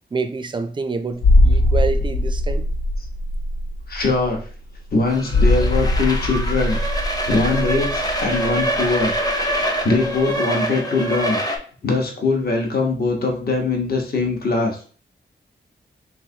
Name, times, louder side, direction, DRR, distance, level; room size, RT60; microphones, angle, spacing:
voice 1, 0.1-2.6, right 4 dB, 25° right, 0.4 m, -27 dB
sound 1, 1.2-9.6 9.9-10.0, left 1 dB, 70° left, 0.4 m, -20 dB
voice 2, 3.9-4.4 4.9-9.1 9.5-11.4 11.8-14.8, left 3 dB, 50° left, 0.9 m, -22 dB
sound 2, 5.1-11.6, right 1 dB, 20° left, 0.6 m, -25 dB
3.4 x 3.1 x 2.7 m
wide cardioid pair, 85°, 20 cm